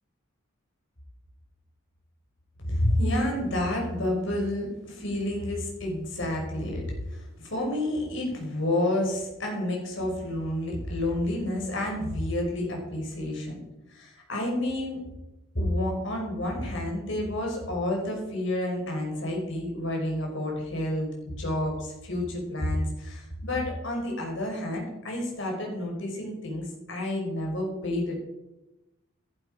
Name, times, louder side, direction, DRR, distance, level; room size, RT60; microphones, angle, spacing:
voice 1, 2.7-13.6 13.9-15.0 15.5-28.2, left 1 dB, 60° left, 0 dB, 5.2 m, -29 dB
15.0 x 11.0 x 5.0 m, 0.97 s
head